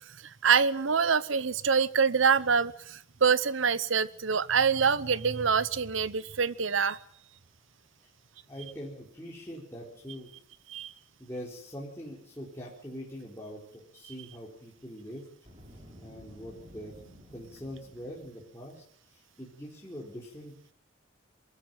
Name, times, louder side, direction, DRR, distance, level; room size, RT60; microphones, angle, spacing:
voice 1, 0.2-7.0 10.7-10.9, right 6 dB, 75° right, 17 dB, 0.8 m, -25 dB
voice 2, 8.5-10.3 11.2-15.3 16.0-17.0 17.3-18.8 19.1-20.5, equal, 15° left, -5 dB, 4.3 m, -43 dB
Boom, 15.4-18.5, equal, 30° right, 5.6 m, -52 dB
23.0 x 14.0 x 9.1 m, 0.67 s
head